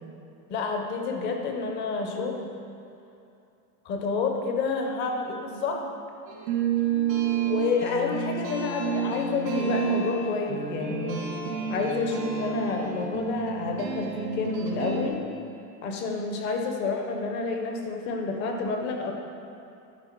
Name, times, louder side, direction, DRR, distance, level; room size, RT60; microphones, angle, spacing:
voice 1, 0.5-2.5 3.8-5.8 7.5-11.2 11.7-15.2 15.8-19.1, left 4 dB, 25° left, 3 dB, 0.5 m, -29 dB
sound 1, 6.3-15.1, right 6 dB, 75° right, 1.7 m, -30 dB
11.0 x 3.8 x 4.3 m, 2.7 s
supercardioid pair, 140°, 50 cm